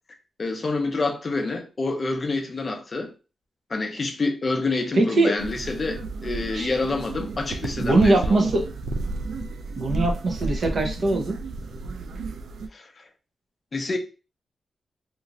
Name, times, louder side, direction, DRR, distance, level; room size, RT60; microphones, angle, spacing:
voice 1, 0.4-3.1 3.7-8.5 12.7-13.0 13.7-14.0, left 3 dB, 30° left, 0.5 m, -27 dB
voice 2, 4.9-5.4 6.5-6.7 7.8-8.6 9.8-11.4, right 2 dB, 50° right, 0.6 m, -21 dB
sound 1, 5.4-12.7, right 3 dB, 80° right, 0.3 m, -32 dB
2.5 x 2.4 x 2.9 m
wide cardioid pair, 160°, 0 cm